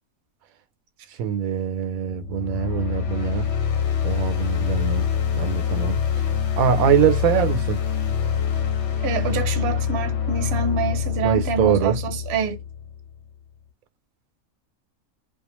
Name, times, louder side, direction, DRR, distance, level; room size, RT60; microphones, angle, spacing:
voice 1, 1.2-3.5 4.0-6.0 6.6-7.8 11.2-12.0, right 8 dB, 80° right, 1.0 m, -23 dB
sound 1, 2.1-13.1, left 8 dB, 60° left, 0.8 m, -25 dB
voice 2, 9.0-12.6, right 5 dB, 60° right, 0.8 m, -26 dB
2.4 x 2.3 x 2.9 m
omnidirectional pair, 1.4 m